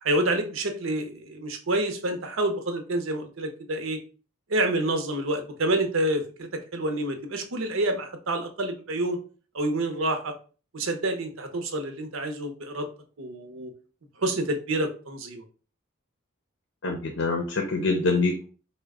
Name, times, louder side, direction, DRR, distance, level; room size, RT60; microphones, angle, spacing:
voice 1, 0.0-4.0 4.5-9.2 9.5-10.3 10.7-12.9 13.2-13.7 14.2-15.4, right 1 dB, 80° right, 5 dB, 0.7 m, -28 dB
voice 2, 16.8-18.4, left 3 dB, 65° left, 3 dB, 0.6 m, -25 dB
4.4 x 2.2 x 3.5 m, 0.37 s
head